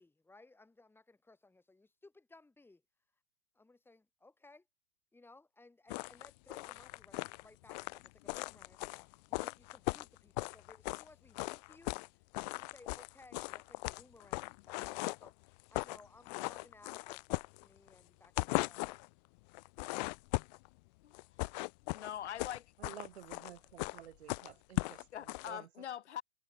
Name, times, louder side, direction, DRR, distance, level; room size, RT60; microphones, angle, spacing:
voice 1, 0.0-2.8 3.5-4.7 5.1-8.9 9.3-15.3 15.7-19.1, left 2 dB, 5° left, 5.8 m, -61 dB
sound 1, 5.9-11.1 11.4-12.1 12.3-15.3 15.6-16.0 16.3-17.9 18.2-19.1 19.5-20.7 21.1-25.5, left 27 dB, 40° left, 0.6 m, -38 dB
voice 2, 21.9-22.7 25.1-26.2, left 10 dB, 75° left, 1.4 m, -43 dB
voice 3, 22.8-25.9, right 12 dB, 70° right, 2.3 m, -53 dB
hypercardioid pair, 120°, 34 cm